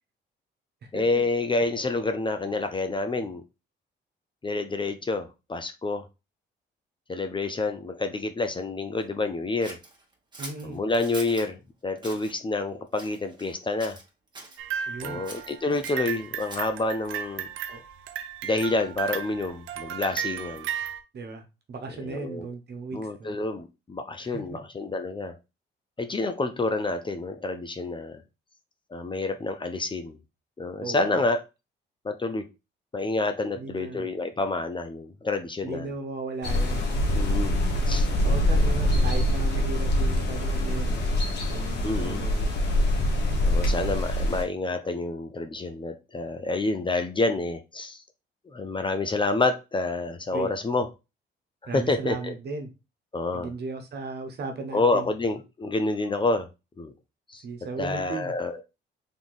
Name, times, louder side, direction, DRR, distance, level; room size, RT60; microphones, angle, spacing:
voice 1, 0.9-3.4 4.4-6.1 7.1-9.8 10.6-14.0 15.0-17.5 18.4-20.7 22.0-22.5 22.9-25.3 26.0-28.2 28.9-30.2 30.6-31.4 32.0-32.4 32.9-35.9 37.1-37.6 37.9-38.1 41.8-42.2 43.4-48.0 48.5-50.9 51.7-52.3 53.1-53.5 54.7-56.5 56.8-56.9 57.3-57.4 57.8-58.6, left 3 dB, 25° left, 0.6 m, -28 dB
Scissors, 9.6-11.5 12.0-12.3 12.9-13.5 13.8-14.6 15.2-16.8, right 2 dB, 20° right, 1.4 m, -43 dB
voice 2, 10.4-10.8 14.9-15.2 17.7-17.8 21.1-23.4 24.2-24.6 30.8-31.2 33.6-34.1 35.6-36.9 38.2-41.0 41.5-42.5 50.3-50.5 51.7-52.7 53.3-55.1 57.4-58.3, right 3 dB, 55° right, 1.2 m, -36 dB
sound 1, 14.6-21.0, right 9 dB, 85° right, 0.6 m, -35 dB
sound 2, 36.4-44.4, left 1 dB, 60° left, 1.5 m, -24 dB
3.7 x 2.9 x 4.0 m
cardioid pair, 90°, 20 cm